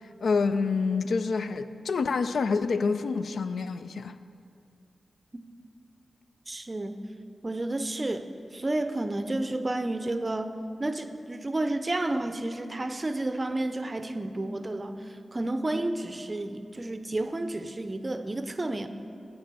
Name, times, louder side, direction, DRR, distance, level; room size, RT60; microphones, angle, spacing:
voice 1, 0.0-4.2, left 4 dB, 80° left, 0.3 m, -27 dB
voice 2, 6.5-7.0 7.4-8.3 8.5-18.9, right 2 dB, 25° right, 0.5 m, -31 dB
8.5 x 5.9 x 7.5 m
wide cardioid pair, 95°, 0 cm